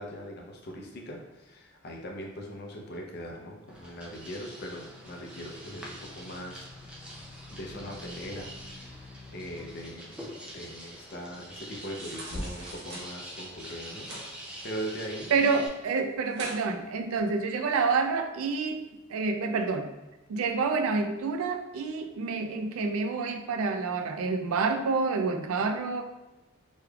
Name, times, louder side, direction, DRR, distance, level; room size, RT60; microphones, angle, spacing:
voice 1, 0.0-6.6 7.5-10.3 10.5-14.1 14.6-15.3 17.2-17.3, equal, 50° left, 0 dB, 0.6 m, -40 dB
sound 1, 3.7-15.7, right 1 dB, 5° right, 0.4 m, -45 dB
sound 2, 3.9-9.7 12.2-13.0, left 1 dB, 85° left, 1.0 m, -46 dB
sound 3, 11.7-13.1 13.8-14.3 14.7-15.5 15.8-15.9 16.3-16.6 17.1-17.2, right 1 dB, 55° right, 0.8 m, -43 dB
voice 2, 15.3-19.9 20.3-26.0, right 4 dB, 85° right, 6 dB, 0.4 m, -28 dB
3.3 x 3.1 x 2.3 m, 1.1 s
head